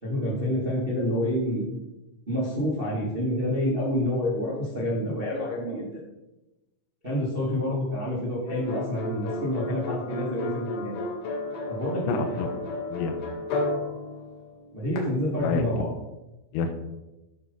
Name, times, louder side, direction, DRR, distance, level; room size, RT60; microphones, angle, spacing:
voice 1, 0.0-1.7 2.3-6.0 7.0-11.0 11.7-12.2 14.7-15.9, left 1 dB, 85° right, -6 dB, 0.5 m, -28 dB
sound 1, 8.5-15.0, left 2 dB, 60° left, 3.0 m, -33 dB
voice 2, 12.1-12.6 12.9-13.4 15.4-15.7 16.5-16.7, left 5 dB, 85° left, 7 dB, 3.6 m, -29 dB
13.0 x 5.9 x 5.4 m, 1.0 s
omnidirectional pair, 5.9 m